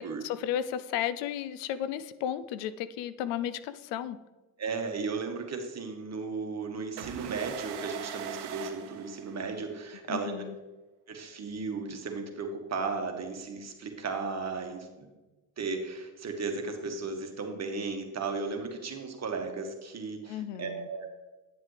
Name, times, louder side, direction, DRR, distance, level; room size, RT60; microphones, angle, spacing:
voice 1, 0.0-4.2 10.1-10.5 20.3-20.9, left 10 dB, 85° left, 13 dB, 0.6 m, -34 dB
voice 2, 4.6-10.3 11.1-15.1 15.6-21.1, right 4 dB, 40° right, 4 dB, 1.4 m, -35 dB
sound 1, 7.0-9.8, right 10 dB, 70° right, 0.9 m, -40 dB
9.1 x 7.4 x 3.3 m, 1.1 s
supercardioid pair, 75°, 42 cm